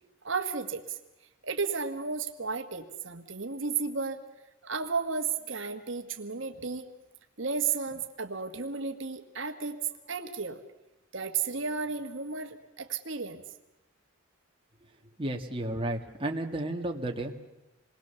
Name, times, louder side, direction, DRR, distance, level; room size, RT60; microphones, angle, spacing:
voice 1, 0.2-1.0 1.4-4.2 4.6-6.9 7.4-10.6 11.1-13.4, right 5 dB, 65° right, 6 dB, 1.6 m, -33 dB
voice 2, 15.2-17.4, right 1 dB, 25° right, 2 dB, 1.8 m, -32 dB
27.5 x 21.0 x 7.0 m, 0.96 s
head